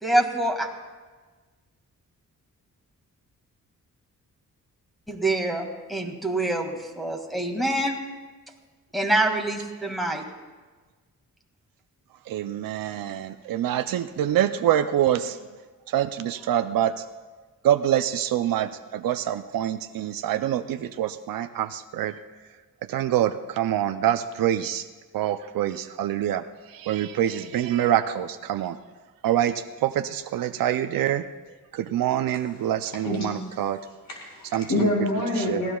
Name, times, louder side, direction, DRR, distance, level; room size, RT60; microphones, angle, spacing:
voice 1, 0.0-0.7 5.1-8.0 8.9-10.2, right 1 dB, ahead, 0 dB, 2.0 m, -25 dB
voice 2, 12.3-15.4 15.9-17.0 17.6-22.1 22.9-24.8 25.1-28.8 29.2-31.2 31.7-33.8 34.5-34.9 35.4-35.6, right 11 dB, 80° right, 8 dB, 0.5 m, -25 dB
voice 3, 34.1-35.8, left 1 dB, 80° left, -1 dB, 5.7 m, -26 dB
25.0 x 16.5 x 2.3 m, 1.3 s
cardioid pair, 105°, 34 cm